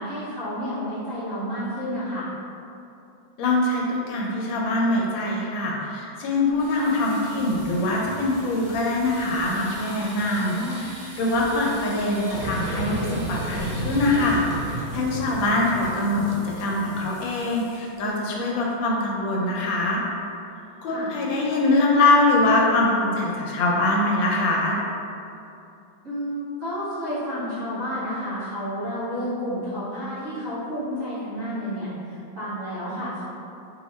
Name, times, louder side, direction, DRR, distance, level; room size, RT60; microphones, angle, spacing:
voice 1, 0.0-2.3 6.7-7.0 10.3-10.8 20.8-21.1 26.0-33.2, equal, 50° right, -12 dB, 1.1 m, -31 dB
voice 2, 3.4-14.6 14.9-20.0 20.8-24.8, left 2 dB, 75° left, -2 dB, 1.3 m, -23 dB
sound 1, 6.5-18.1 18.4-18.7 19.0-19.1 19.5-19.9, right 1 dB, 30° right, 0.8 m, -43 dB
sound 2, 12.3-17.6, right 1 dB, 70° right, 0.7 m, -32 dB
3.0 x 2.8 x 4.1 m, 2.7 s
omnidirectional pair, 2.2 m